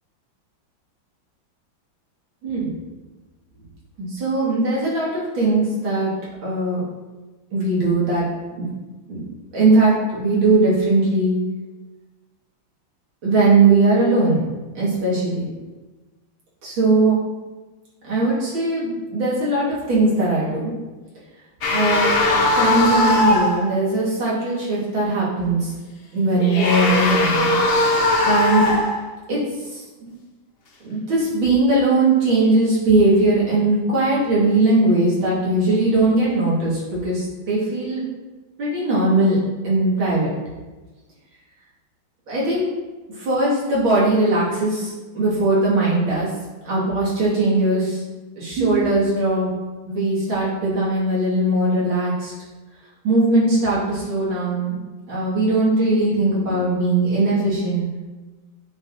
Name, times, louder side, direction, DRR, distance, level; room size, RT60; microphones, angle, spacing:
voice 1, 2.4-2.7 4.0-6.1 6.4-6.8 7.5-8.3 8.6-8.7 9.1-9.2 9.5-11.3 13.2-14.4 14.7-15.5 16.6-17.2 18.1-20.7 21.7-22.1 22.6-25.7 26.1-27.6 28.2-28.7 29.3-29.4 29.7-30.1 30.8-38.1 38.6-39.4 39.6-40.3 42.3-42.7 43.2-46.3 46.6-48.0 48.4-49.5 49.9-52.3 53.0-54.7 55.1-57.9, right 2 dB, 90° right, -8 dB, 3.0 m, -19 dB
sound 1, 21.6-23.7 26.3-29.1, left 2 dB, 75° left, 0.5 m, -19 dB
9.1 x 4.8 x 2.7 m, 1.2 s
omnidirectional pair, 2.1 m